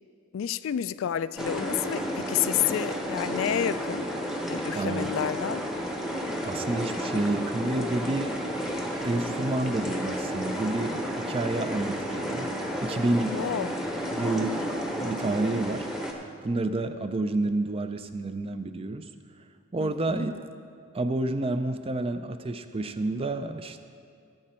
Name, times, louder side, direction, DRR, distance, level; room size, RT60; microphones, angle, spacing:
voice 1, 0.3-4.0 4.5-5.6 13.3-13.8 19.8-20.3, left 9 dB, 70° left, 15 dB, 0.3 m, -30 dB
sound 1, 1.4-16.1, equal, ahead, 0.8 m, -32 dB
voice 2, 4.7-5.1 6.4-8.3 9.0-12.5 12.8-13.3 14.1-14.6 15.0-15.9 16.4-19.1 19.7-20.4 20.9-23.8, right 2 dB, 25° right, 9 dB, 0.4 m, -29 dB
16.0 x 7.6 x 4.4 m, 2.3 s
head